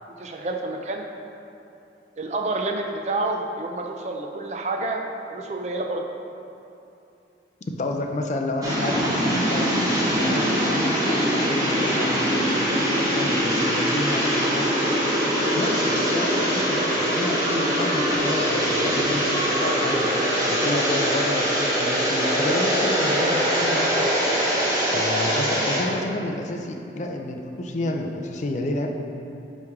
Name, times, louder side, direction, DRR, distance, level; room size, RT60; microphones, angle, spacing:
voice 1, 0.2-1.0 2.2-5.0 5.3-6.0 14.1-14.2, right 2 dB, 40° right, 2 dB, 0.4 m, -28 dB
voice 2, 7.7-14.7 15.5-20.1 20.5-24.1 24.9-28.9, left 2 dB, 40° left, 3 dB, 0.4 m, -30 dB
sound 1, 8.6-25.8, equal, 20° right, 1.1 m, -22 dB
9.2 x 3.2 x 3.5 m, 2.7 s
head